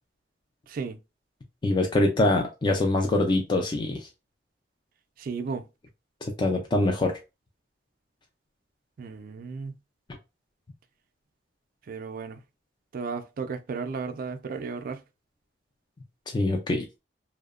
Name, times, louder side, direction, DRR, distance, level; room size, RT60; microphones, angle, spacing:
voice 1, 0.7-1.0 5.2-5.6 9.0-9.8 11.9-12.4 12.9-15.0, right 5 dB, 50° right, 0.3 m, -34 dB
voice 2, 1.6-4.1 6.4-7.1 16.3-16.8, left 2 dB, 25° left, 0.3 m, -24 dB
2.8 x 2.0 x 2.3 m
head